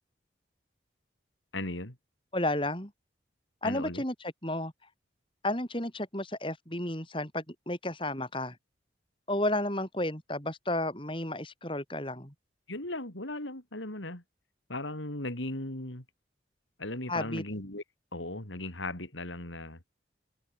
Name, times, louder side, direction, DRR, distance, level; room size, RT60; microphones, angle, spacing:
voice 1, 1.5-2.0 3.6-4.0 12.7-14.2 14.7-16.0 16.8-17.8 18.1-19.8, left 2 dB, 90° left, 5.1 m, -37 dB
voice 2, 2.3-2.9 3.6-4.7 5.4-8.6 9.3-12.3 17.1-17.4, left 1 dB, 25° left, 7.0 m, -32 dB
head